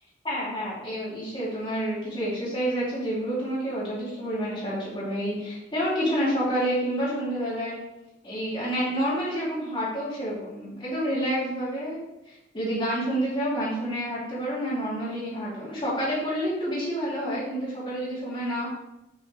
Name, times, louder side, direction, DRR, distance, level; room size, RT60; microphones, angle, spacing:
voice 1, 0.2-7.8 8.2-12.0 12.3-18.7, equal, 30° left, -8 dB, 2.7 m, -29 dB
7.5 x 6.9 x 3.3 m, 0.96 s
head